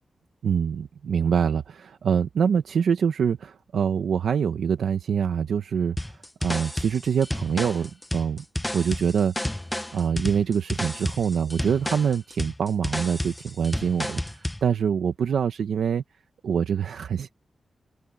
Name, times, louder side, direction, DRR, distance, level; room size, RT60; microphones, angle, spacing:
voice 1, 0.4-8.4 8.7-9.3 9.9-16.0 16.4-17.3, right 7 dB, 85° right, 1.0 m, -25 dB
sound 1, 6.0-14.6, left 1 dB, 10° left, 1.0 m, -31 dB
cardioid pair, 90°, 0 cm